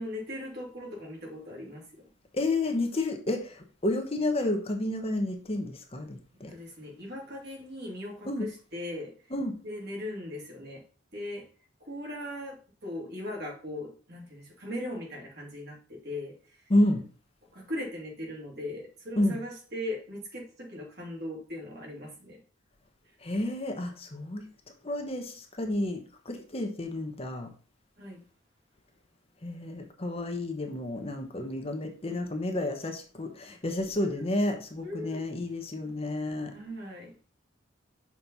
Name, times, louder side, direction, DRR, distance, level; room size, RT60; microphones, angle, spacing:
voice 1, 0.0-2.0 6.5-9.1 9.6-10.8 11.1-11.5 11.8-16.6 17.5-22.4 28.0-28.2 30.9-31.0 34.0-34.3 34.8-35.3 36.5-37.2, left 1 dB, 55° right, -2 dB, 2.8 m, -39 dB
voice 2, 2.3-6.5 8.2-8.5 9.3-9.6 16.7-17.0 19.2-19.4 23.2-24.4 24.8-27.5 29.4-36.5, left 1 dB, 30° left, 4 dB, 1.0 m, -30 dB
6.2 x 4.3 x 5.5 m, 0.39 s
head